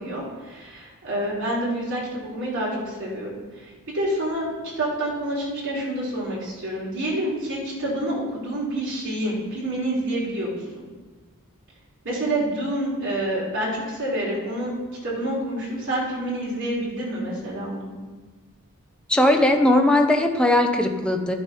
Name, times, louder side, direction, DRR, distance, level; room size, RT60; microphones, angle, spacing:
voice 1, 0.0-3.3 3.9-4.5 4.8-10.6 12.0-14.7 15.0-17.9, right 1 dB, 60° right, -6 dB, 3.4 m, -27 dB
voice 2, 19.1-21.3, left 1 dB, 5° left, 4 dB, 0.7 m, -19 dB
10.5 x 6.4 x 5.5 m, 1.3 s
head